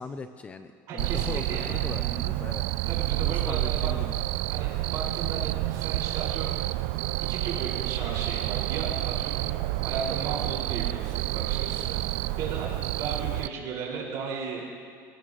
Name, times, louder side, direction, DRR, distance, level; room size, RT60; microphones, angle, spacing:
voice 1, 0.0-2.7 3.2-4.2, left 4 dB, 15° left, 9 dB, 0.5 m, -39 dB
voice 2, 0.9-1.8 2.9-3.9 4.5-6.5 7.2-9.5 9.8-12.0 12.4-14.6, right 5 dB, 50° right, -4 dB, 5.1 m, -35 dB
Cricket, 1.0-13.5, right 18 dB, 70° right, 0.4 m, -29 dB
27.5 x 17.0 x 3.1 m, 2.3 s
cardioid pair, 165°, 7 cm